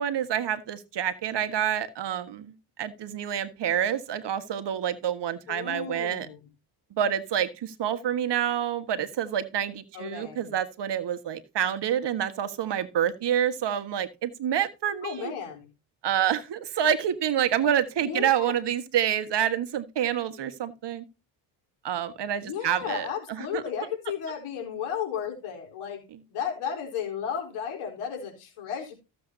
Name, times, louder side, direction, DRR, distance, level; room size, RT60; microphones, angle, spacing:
voice 1, 0.0-2.5 2.8-6.3 6.9-15.3 16.0-21.0 21.8-23.6, right 9 dB, 55° right, 1.6 m, -28 dB
voice 2, 5.5-6.4 9.9-10.5 15.0-15.7 18.0-18.5 22.4-26.0 26.3-28.9, left 8 dB, 80° left, 4.2 m, -34 dB
15.0 x 7.7 x 2.7 m
supercardioid pair, 65°, 49 cm